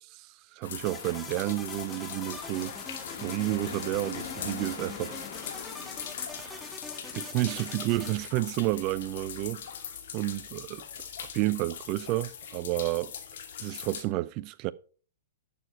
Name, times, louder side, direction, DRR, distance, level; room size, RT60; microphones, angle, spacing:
voice 1, 0.5-2.7 3.2-5.2 6.4-6.7 7.1-9.8 10.1-10.8 11.2-13.1 13.6-14.7, right 18 dB, 40° right, 0.6 m, -31 dB
sound 1, 0.6-14.0, left 8 dB, 65° left, 2.3 m, -40 dB
sound 2, 0.8-8.1, left 2 dB, 5° left, 1.1 m, -44 dB
11.0 x 6.9 x 4.5 m
hypercardioid pair, 125°, 0 cm